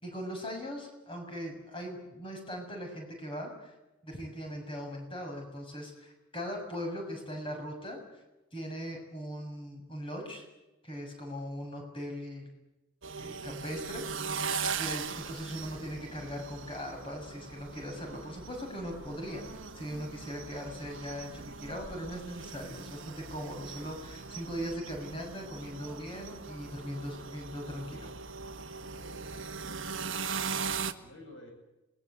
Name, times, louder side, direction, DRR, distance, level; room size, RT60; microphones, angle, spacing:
voice 1, 0.0-3.7 4.0-8.0 8.5-10.4 10.8-12.5 13.2-14.5 14.8-28.1, equal, 25° left, 3 dB, 6.9 m, -40 dB
sound 1, 13.0-30.9, right 5 dB, 65° right, 1.5 m, -40 dB
voice 2, 28.8-31.5, left 1 dB, 65° left, 3 dB, 7.9 m, -54 dB
27.5 x 20.0 x 8.2 m, 1.0 s
head